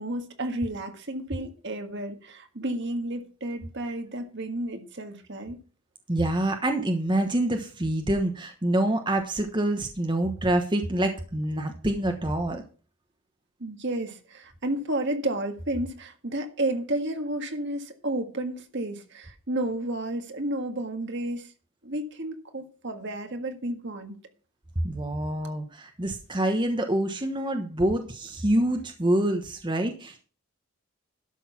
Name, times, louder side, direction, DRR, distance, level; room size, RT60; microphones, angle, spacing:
voice 1, 0.0-5.6 13.6-21.5 21.8-24.2, right 1 dB, 55° right, 1.7 m, -31 dB
voice 2, 6.1-12.6 24.8-30.2, right 1 dB, 20° right, 1.1 m, -26 dB
12.0 x 6.4 x 5.9 m
head